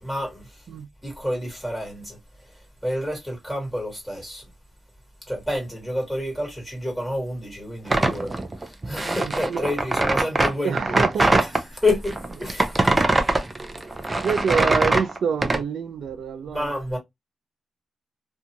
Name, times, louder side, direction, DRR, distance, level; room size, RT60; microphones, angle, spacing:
voice 1, 0.0-0.6 1.0-2.2 2.8-4.4 5.3-8.3 8.6-11.0 11.8-13.0 16.5-17.0, left 1 dB, ahead, 1.5 m, -29 dB
sound 1, 7.9-11.6 12.1-15.6, right 2 dB, 20° right, 0.4 m, -22 dB
voice 2, 9.2-9.7 10.6-11.4 14.2-16.7, right 6 dB, 80° right, 0.4 m, -26 dB
2.6 x 2.4 x 2.8 m
wide cardioid pair, 150°, 0 cm